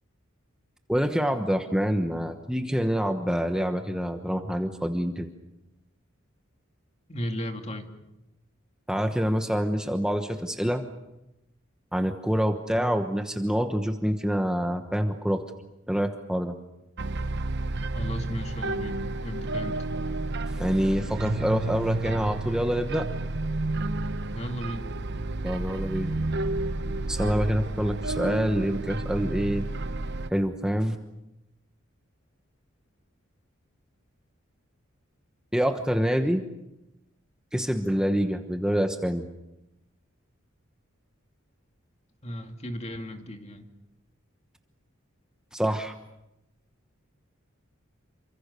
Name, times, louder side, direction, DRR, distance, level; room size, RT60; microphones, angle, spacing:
voice 1, 0.9-5.3 8.9-10.8 11.9-15.4 15.9-16.6 20.5-23.1 25.4-26.1 27.1-29.7 30.3-31.0 35.5-36.4 37.5-39.2 45.5-45.9, equal, 5° right, 6 dB, 1.1 m, -26 dB
voice 2, 7.1-7.9 12.8-13.0 17.9-19.8 24.3-24.8 42.2-43.7, equal, 30° left, 5 dB, 2.4 m, -35 dB
sound 1, 17.0-30.3, right 2 dB, 55° right, 1.0 m, -31 dB
28.5 x 25.5 x 6.8 m, 0.91 s
head